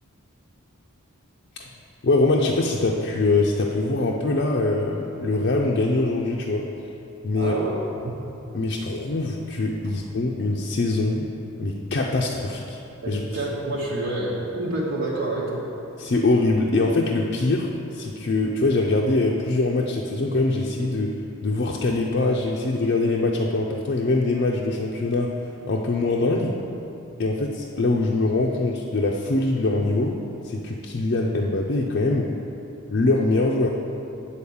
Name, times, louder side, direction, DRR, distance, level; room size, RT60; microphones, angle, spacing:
voice 1, 2.0-6.7 7.2-7.6 8.5-11.3 11.6-12.8 13.1-13.2 16.0-25.3 25.6-26.6 27.2-30.2 30.4-32.3 32.9-33.7, left 2 dB, 50° left, -2 dB, 0.5 m, -23 dB
voice 2, 7.3-8.2 13.0-15.6, right 2 dB, 65° right, -6 dB, 1.3 m, -28 dB
8.4 x 4.3 x 7.1 m, 2.8 s
head